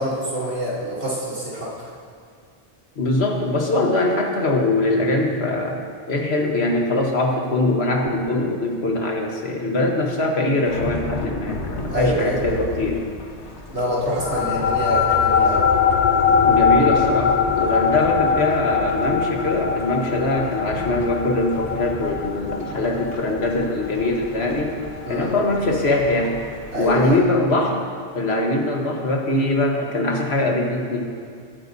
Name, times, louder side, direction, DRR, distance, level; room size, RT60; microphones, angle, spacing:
voice 1, 0.0-1.9 11.9-12.4 13.7-15.7 25.1-25.3 26.7-27.2, equal, 80° right, -8 dB, 3.3 m, -25 dB
voice 2, 3.0-13.0 16.4-24.8 25.1-26.4 26.7-27.8 28.1-31.1, left 2 dB, 70° left, 1 dB, 1.6 m, -22 dB
Thunderstorm / Rain, 10.7-27.2, left 2 dB, 90° left, 1.5 m, -35 dB
sound 1, 14.2-25.0, left 6 dB, 50° left, 0.6 m, -21 dB
19.5 x 9.7 x 2.7 m, 2.3 s
omnidirectional pair, 1.1 m